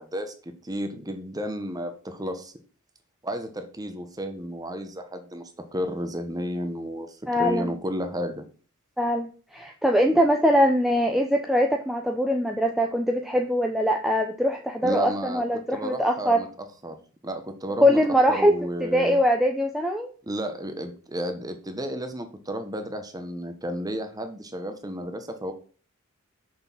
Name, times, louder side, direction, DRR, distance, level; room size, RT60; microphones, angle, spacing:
voice 1, 0.0-2.5 3.2-8.4 14.8-15.4 15.7-16.5 16.8-17.0 17.2-19.2 20.2-25.5, equal, 15° right, 7 dB, 1.2 m, -32 dB
voice 2, 7.3-7.7 9.0-16.4 17.8-18.5 18.8-20.1, equal, ahead, 3 dB, 0.7 m, -22 dB
6.5 x 5.9 x 6.2 m, 0.40 s
head